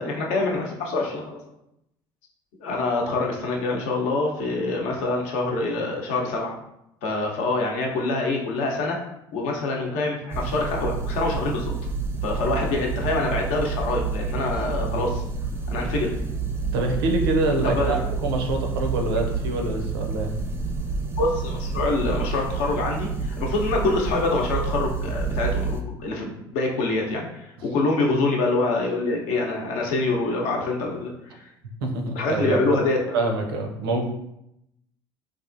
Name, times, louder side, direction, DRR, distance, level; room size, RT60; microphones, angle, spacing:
voice 1, 0.0-1.4 2.6-6.5 7.0-9.0 9.3-11.7 12.2-15.2 15.7-16.1 17.6-18.0 21.2-31.4 32.2-33.0, left 3 dB, 65° left, 0 dB, 0.7 m, -25 dB
sound 1, 10.3-25.8, right 4 dB, 20° right, 0.5 m, -28 dB
voice 2, 14.8-15.1 16.7-20.3 31.8-32.8 33.1-34.0, right 2 dB, 80° right, 3 dB, 0.5 m, -26 dB
3.3 x 2.4 x 2.5 m, 0.82 s
hypercardioid pair, 70°, 12 cm